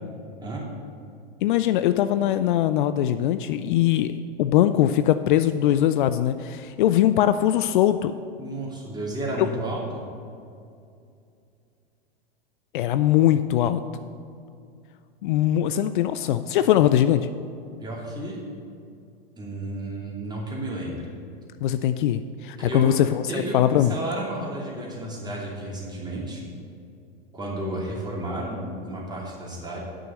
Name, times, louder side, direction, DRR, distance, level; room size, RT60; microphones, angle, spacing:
voice 1, 1.4-4.1 4.4-8.1 12.7-13.8 15.2-17.3 21.6-23.9, left 12 dB, 60° left, 11 dB, 0.4 m, -21 dB
voice 2, 8.4-10.0 17.8-18.4 19.4-21.1 22.6-22.9 23.3-26.4 27.3-29.8, right 1 dB, 15° right, -3 dB, 2.7 m, -32 dB
9.1 x 6.3 x 6.7 m, 2.5 s
hypercardioid pair, 100°, 29 cm